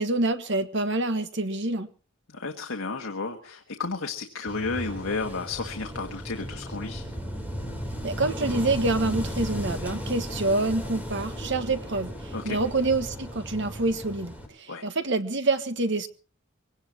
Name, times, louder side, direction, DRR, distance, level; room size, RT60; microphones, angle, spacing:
voice 1, 0.0-1.9 8.0-16.1, right 2 dB, 55° right, 1.4 m, -27 dB
voice 2, 2.3-7.0 12.3-12.6 14.7-14.9, left 4 dB, 80° left, 1.6 m, -32 dB
Wind / Waves surf, 4.5-14.5, equal, 10° right, 3.5 m, -35 dB
23.5 x 17.5 x 2.9 m
head